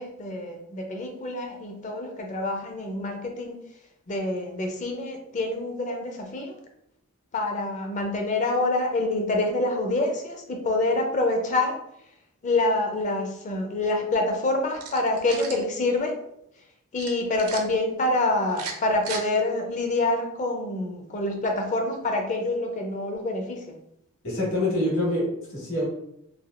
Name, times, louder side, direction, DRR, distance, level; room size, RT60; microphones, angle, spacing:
voice 1, 0.0-3.6 4.1-6.5 7.3-11.8 12.4-16.2 16.9-23.8, left 2 dB, 35° left, 3 dB, 0.5 m, -26 dB
sound 1, 14.7-15.6 17.0-17.6 18.5-19.2, right 5 dB, 70° right, 0.5 m, -36 dB
voice 2, 24.2-25.9, left 1 dB, 60° left, -4 dB, 1.5 m, -26 dB
3.3 x 2.6 x 2.5 m, 0.76 s
head